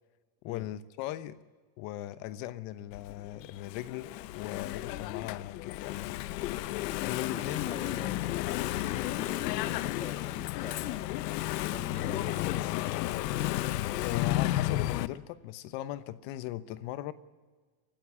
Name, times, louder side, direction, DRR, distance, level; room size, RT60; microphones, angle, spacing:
voice 1, 0.4-1.4 1.8-6.7 7.0-7.7 14.0-17.1, left 14 dB, 65° left, 1.1 m, -38 dB
Engine / Mechanisms, 2.9-15.1, left 15 dB, 90° left, 0.9 m, -33 dB
voice 2, 7.2-11.1 11.5-12.6, left 4 dB, 15° left, 1.4 m, -45 dB
23.0 x 14.5 x 8.3 m
supercardioid pair, 130°, 47 cm